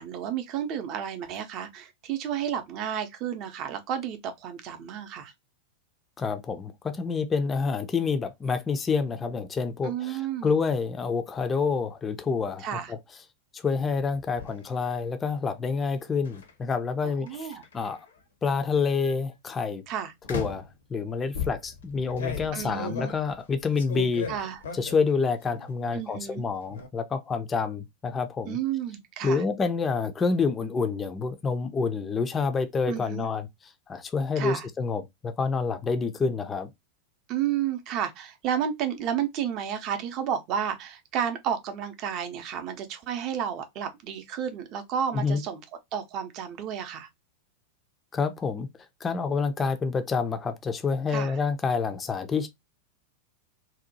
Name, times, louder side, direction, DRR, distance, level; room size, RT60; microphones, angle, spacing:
voice 1, 0.0-5.3 9.8-10.5 12.6-12.9 17.0-17.6 19.9-20.1 22.5-23.1 24.3-24.6 25.9-26.4 28.5-29.4 32.9-33.3 34.4-34.7 37.3-45.6 45.9-47.1 51.1-51.4, right 9 dB, 40° right, 0.5 m, -31 dB
voice 2, 6.2-13.0 13.5-18.0 18.4-19.8 20.3-24.3 24.7-28.6 29.2-33.5 33.9-36.7 45.1-45.4 48.1-48.7 49.0-52.5, left 5 dB, 20° left, 0.4 m, -28 dB
sound 1, 14.0-14.5 16.3-16.5 17.3-18.1 18.8-19.1 20.2-20.7 21.3-25.1 25.5-26.0 26.3-26.9, left 5 dB, 65° left, 0.6 m, -36 dB
2.7 x 2.1 x 2.5 m
figure-of-eight pair, 90°, 0 cm